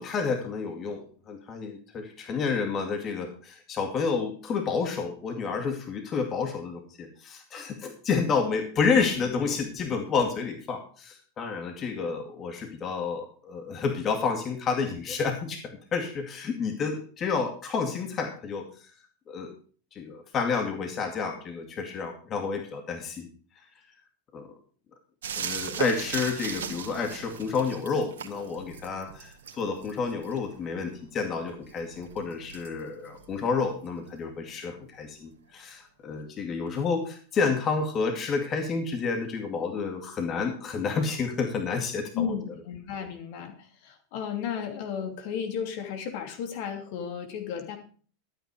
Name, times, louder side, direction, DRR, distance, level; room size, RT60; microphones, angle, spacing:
voice 1, 0.0-18.9 19.3-19.5 19.9-23.3 24.3-24.6 25.4-42.3, left 5 dB, 35° left, 4 dB, 2.3 m, -30 dB
sound 1, 25.2-34.6 36.7-36.8, right 7 dB, 75° right, 1.8 m, -39 dB
voice 2, 42.1-47.8, left 8 dB, 60° left, 5 dB, 2.8 m, -34 dB
12.5 x 9.0 x 4.8 m, 0.42 s
hypercardioid pair, 95°, 0 cm